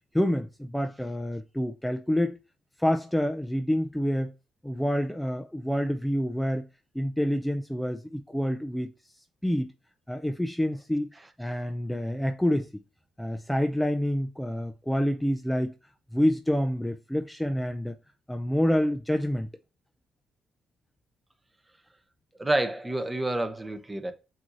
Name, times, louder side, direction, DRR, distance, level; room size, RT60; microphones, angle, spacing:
voice 1, 0.1-2.4 2.8-4.3 4.6-6.7 6.9-9.7 10.1-11.1 11.4-12.8 13.2-15.7 16.1-18.0 18.3-19.5, equal, 5° left, 0.4 m, -27 dB
voice 2, 22.4-24.1, right 1 dB, 15° right, 0.8 m, -28 dB
7.5 x 2.7 x 2.5 m
cardioid pair, 90°, 0 cm